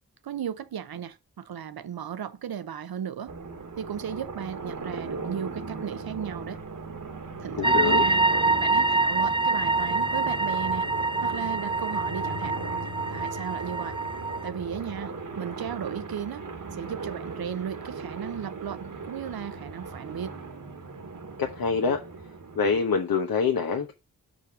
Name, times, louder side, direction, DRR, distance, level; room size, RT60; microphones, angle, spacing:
voice 1, 0.2-3.3 3.8-6.6 7.4-8.2 8.6-10.9 11.2-12.6 13.1-14.0 14.4-20.3, right 8 dB, 85° right, 0.8 m, -36 dB
sound 1, 3.3-22.8, right 3 dB, 60° right, 1.5 m, -38 dB
voice 2, 7.6-8.0 21.4-22.0 22.6-23.9, left 5 dB, 75° left, 1.0 m, -25 dB
sound 2, 7.6-14.5, right 3 dB, 15° right, 0.6 m, -25 dB
5.2 x 5.2 x 6.0 m
cardioid pair, 60°, 36 cm